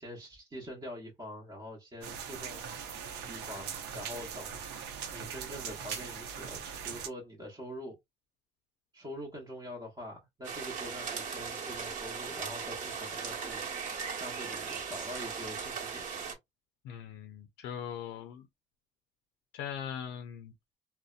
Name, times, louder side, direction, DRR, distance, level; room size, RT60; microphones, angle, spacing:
voice 1, 0.0-2.7 3.3-4.6 5.1-8.0 8.9-13.9 14.2-16.1, equal, 20° right, 0.9 m, -44 dB
sound 1, 2.0-7.1, right 7 dB, 85° right, 0.7 m, -41 dB
sound 2, 10.4-16.3, right 6 dB, 50° right, 1.1 m, -38 dB
voice 2, 16.8-18.5 19.5-20.5, left 8 dB, 85° left, 0.4 m, -40 dB
2.6 x 2.1 x 2.3 m
cardioid pair, 110°, 17 cm